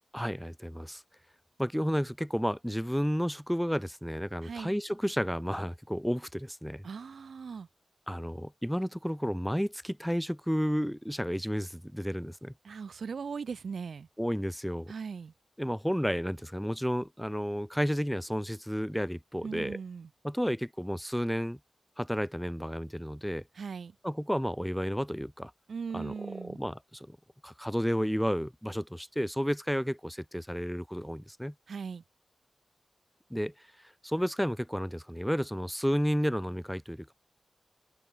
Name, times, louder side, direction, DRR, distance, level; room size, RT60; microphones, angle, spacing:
voice 1, 0.1-1.0 1.6-6.8 8.1-12.5 14.2-14.9 15.6-19.8 20.2-21.6 22.0-23.4 24.0-25.5 25.9-27.2 27.4-31.5 33.3-33.5 34.0-37.1, equal, ahead, 4.0 m, -32 dB
voice 2, 4.4-4.7 6.8-7.7 12.6-14.1 14.9-15.3 19.4-20.1 23.5-23.9 25.7-26.6 31.7-32.0, right 5 dB, 75° right, 3.4 m, -39 dB
open air
wide cardioid pair, 105°, 0 cm